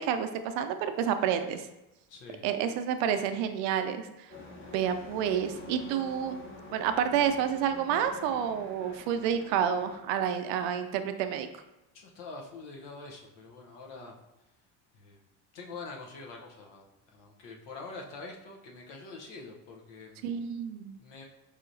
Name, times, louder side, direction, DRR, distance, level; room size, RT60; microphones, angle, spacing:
voice 1, 0.0-1.7 2.4-4.3 4.7-6.4 6.7-11.5 20.2-21.0, right 8 dB, 80° right, 9 dB, 0.5 m, -29 dB
voice 2, 2.1-2.4 11.9-14.1 14.9-15.2 15.5-16.8 17.1-20.2 21.0-21.3, left 3 dB, 70° left, 0 dB, 0.9 m, -45 dB
sound 1, 4.3-10.0, left 2 dB, 25° left, 1.2 m, -47 dB
4.9 x 2.8 x 2.6 m, 0.97 s
supercardioid pair, 95°, 43 cm